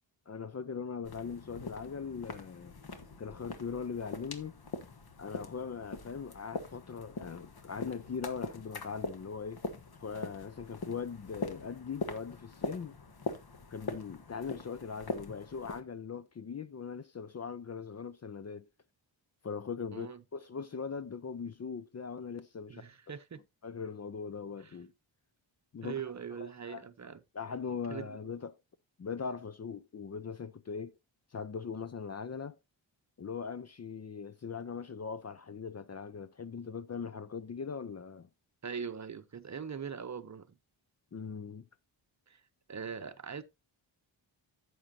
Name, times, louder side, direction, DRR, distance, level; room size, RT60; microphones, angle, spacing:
voice 1, 0.3-2.7 3.2-4.6 5.2-9.6 10.0-12.9 13.7-18.7 19.4-22.9 23.6-24.9 25.7-26.0 26.4-26.8 27.3-28.6 29.0-30.9 31.3-32.6 33.2-38.3 41.1-41.6, left 6 dB, 35° left, 0.5 m, -40 dB
sound 1, 1.0-15.8, left 3 dB, 50° left, 1.4 m, -42 dB
voice 2, 22.7-23.4 24.6-24.8 25.8-27.2 27.9-28.2 38.6-40.6 42.3-42.4 42.7-43.4, right 7 dB, 35° right, 0.8 m, -41 dB
11.0 x 7.9 x 2.7 m
cardioid pair, 90°, 47 cm